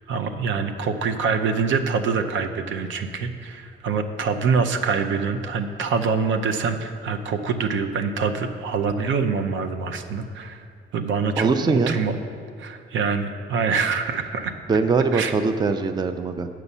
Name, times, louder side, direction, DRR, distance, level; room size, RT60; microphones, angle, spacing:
voice 1, 0.1-10.6 10.9-12.2 12.6-14.5 15.1-15.4, right 5 dB, 70° right, 7 dB, 0.6 m, -25 dB
voice 2, 11.4-12.0 14.7-16.5, right 4 dB, 20° right, 9 dB, 0.4 m, -22 dB
6.9 x 6.1 x 5.5 m, 2.3 s
cardioid pair, 90°, 20 cm